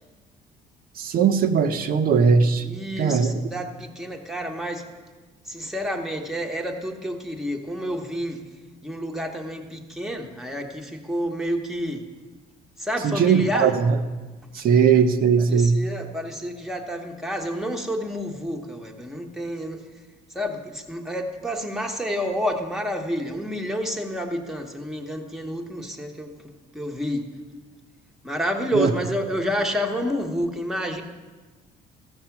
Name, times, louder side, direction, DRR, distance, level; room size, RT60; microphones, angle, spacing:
voice 1, 1.0-2.6 3.0-3.3 13.0-14.0 14.5-15.8 28.7-28.9, right 6 dB, 60° right, 9 dB, 0.9 m, -19 dB
voice 2, 2.6-4.8 5.5-8.4 8.8-12.0 12.8-13.7 14.5-14.6 15.4-19.8 20.3-26.3 26.7-27.2 28.2-31.0, equal, ahead, 2 dB, 1.2 m, -29 dB
14.5 x 6.5 x 5.9 m, 1.3 s
cardioid pair, 110°, 17 cm